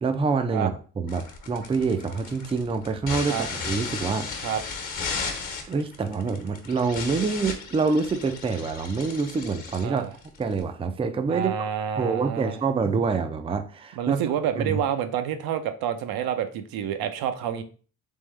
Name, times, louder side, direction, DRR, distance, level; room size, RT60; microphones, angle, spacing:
voice 1, 0.0-4.3 5.7-10.1 10.4-11.7 12.0-14.8, right 4 dB, 15° right, 8 dB, 0.4 m, -26 dB
sound 1, 1.1-10.6, left 5 dB, 55° left, 1.2 m, -35 dB
voice 2, 11.3-12.6 14.0-17.6, right 9 dB, 75° right, 8 dB, 0.6 m, -28 dB
3.6 x 3.4 x 3.2 m, 0.40 s
cardioid pair, 95°, 36 cm